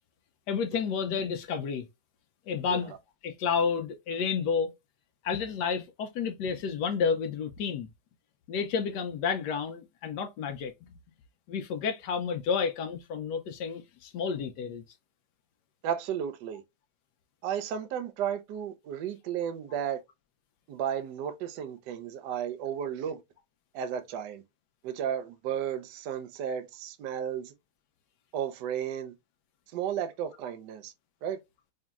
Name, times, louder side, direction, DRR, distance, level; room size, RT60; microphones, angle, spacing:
voice 1, 0.5-1.9 2.5-2.9 3.2-4.7 5.2-7.9 8.5-10.7 11.5-14.8, left 6 dB, 80° left, 0.9 m, -30 dB
voice 2, 15.8-16.6 17.4-20.0 20.7-23.2 23.7-24.4 24.8-27.5 28.3-29.1 29.7-30.9 31.2-31.4, right 9 dB, 70° right, 1.1 m, -33 dB
5.1 x 2.8 x 2.3 m
omnidirectional pair, 2.4 m